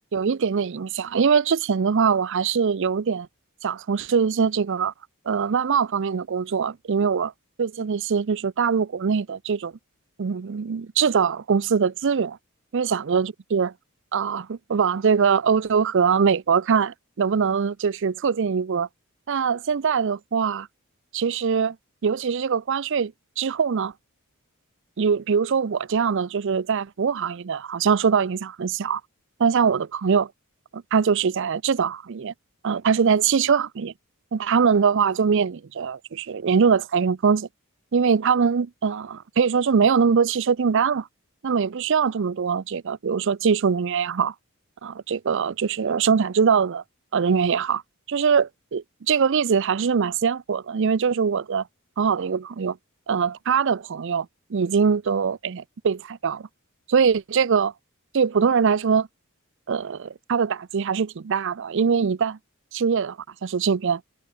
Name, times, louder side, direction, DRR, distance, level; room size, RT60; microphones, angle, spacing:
voice 1, 0.1-3.3 3.6-4.9 5.3-7.3 7.6-9.7 10.2-12.4 12.7-13.7 14.1-18.9 19.3-20.7 21.1-21.8 22.0-23.9 25.0-29.0 29.4-30.3 30.7-32.3 32.6-33.9 34.3-37.5 37.9-41.1 41.4-44.3 44.8-46.8 47.1-47.8 48.1-51.6 52.0-52.8 53.1-54.3 54.5-56.5 56.9-57.7 58.1-59.1 59.7-62.4 62.7-63.2 63.4-64.0, right 6 dB, 60° right, 0.5 m, -22 dB
head